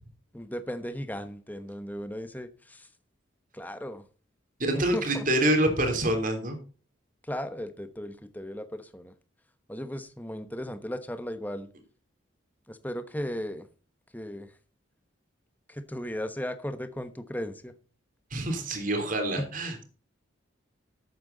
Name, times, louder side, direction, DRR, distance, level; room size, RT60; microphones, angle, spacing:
voice 1, 0.3-2.9 3.5-4.0 4.7-5.2 7.3-9.1 9.7-11.7 12.7-13.7 14.1-14.5 15.7-17.7 19.4-19.5, equal, 10° left, 10 dB, 1.1 m, -36 dB
voice 2, 4.6-6.6 18.3-19.8, right 1 dB, 40° right, 4 dB, 3.4 m, -26 dB
13.0 x 9.0 x 4.0 m, 0.37 s
head